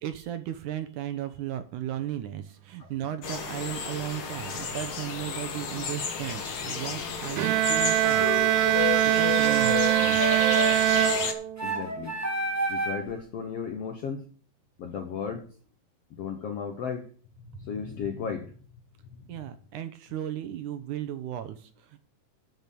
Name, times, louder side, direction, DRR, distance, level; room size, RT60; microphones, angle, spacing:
voice 1, 0.0-10.2 19.3-22.0, right 11 dB, 70° right, 10 dB, 2.1 m, -36 dB
sound 1, 3.2-11.3, left 5 dB, 50° left, 1.8 m, -33 dB
Bowed string instrument, 7.4-11.8, right 16 dB, 90° right, 2.5 m, -23 dB
sound 2, 8.0-13.1, left 1 dB, 10° right, 1.1 m, -30 dB
voice 2, 11.6-12.2 12.7-14.2 14.8-15.5 16.1-17.1 17.4-18.6 19.1-19.4, left 6 dB, 70° left, 5 dB, 1.5 m, -35 dB
12.0 x 6.2 x 6.8 m, 0.43 s
omnidirectional pair, 4.1 m